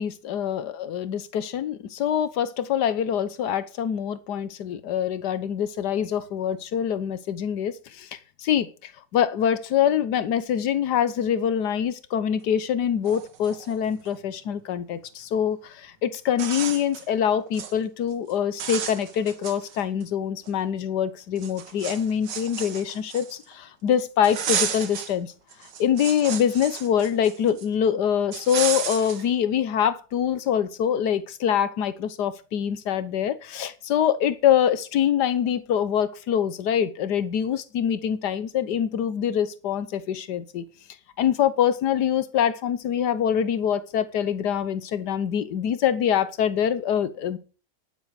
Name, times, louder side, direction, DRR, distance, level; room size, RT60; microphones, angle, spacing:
voice 1, 0.0-8.1 8.4-8.7 9.1-25.3 25.8-40.6 41.2-47.4, left 9 dB, 70° left, 1.5 m, -24 dB
sound 1, 12.7-12.8 13.0-14.2 15.7-15.8 16.3-17.1 17.4-17.7 18.1-18.3 18.6-20.0 20.5-20.6 21.4-23.5 24.2-25.1 25.5-27.7 28.3-29.3, right 7 dB, 85° right, 1.9 m, -32 dB
11.0 x 10.5 x 4.8 m
omnidirectional pair, 1.8 m